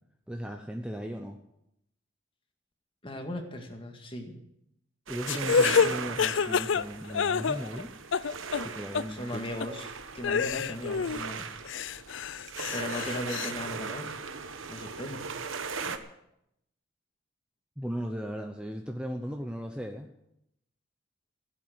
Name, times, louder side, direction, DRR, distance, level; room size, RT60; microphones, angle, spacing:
voice 1, 0.3-1.4 5.1-7.9 8.6-9.5 17.8-20.1, equal, 5° right, 4 dB, 0.8 m, -37 dB
voice 2, 3.0-4.4 9.1-11.5 12.7-14.1 14.6-15.2, left 1 dB, 25° left, 4 dB, 2.0 m, -37 dB
sound 1, 5.1-16.0, right 5 dB, 85° right, 1.1 m, -38 dB
sound 2, 5.3-7.8 8.1-8.7 8.9-9.0 9.6-9.7 10.2-11.2 11.6-13.5, left 6 dB, 70° left, 0.5 m, -27 dB
15.5 x 7.8 x 9.4 m, 0.80 s
head